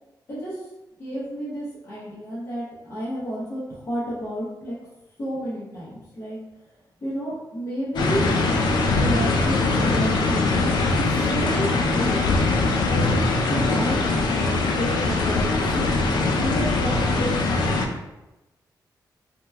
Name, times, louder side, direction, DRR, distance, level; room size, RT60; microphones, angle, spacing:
voice 1, 0.3-0.6 1.0-4.8 5.2-6.4 7.0-8.3 8.9-10.7 11.0-12.4 12.8-17.8, equal, 30° left, -9 dB, 0.8 m, -31 dB
sound 1, 8.0-17.9, left 3 dB, 75° left, 0.4 m, -22 dB
2.9 x 2.1 x 3.3 m, 1.0 s
wide cardioid pair, 175°, 8 cm